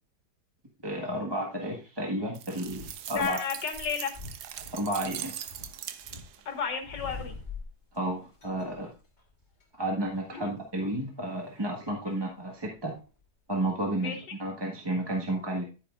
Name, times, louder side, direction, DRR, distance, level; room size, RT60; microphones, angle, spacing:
voice 1, 0.8-3.4 4.7-5.3 7.9-8.9 9.8-12.9 13.5-15.6, right 1 dB, 15° right, 0 dB, 1.4 m, -32 dB
sound 1, 2.3-6.5, right 10 dB, 70° right, 1.2 m, -41 dB
sound 2, 2.6-3.3 3.7-6.3 6.5-8.0 8.4-9.6 10.0-10.3 12.0-13.2 13.6-13.7, left 4 dB, 25° left, 1.6 m, -44 dB
voice 2, 3.1-4.1 6.5-7.4 10.3-10.5 12.0-12.3 14.0-14.2, left 6 dB, 85° left, 5 dB, 2.3 m, -33 dB
10.5 x 9.0 x 2.5 m, 0.32 s
omnidirectional pair, 1.9 m